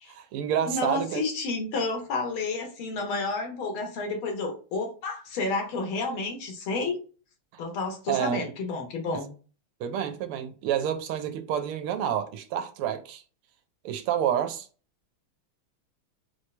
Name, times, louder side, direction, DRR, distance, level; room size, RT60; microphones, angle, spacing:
voice 1, 0.1-1.2 7.5-7.6 8.1-8.5 9.8-13.2 13.8-14.7, right 9 dB, 90° right, 1.6 m, -29 dB
voice 2, 0.7-7.0 7.6-9.3, left 3 dB, 75° left, 1.9 m, -30 dB
4.4 x 3.2 x 3.2 m
omnidirectional pair, 2.4 m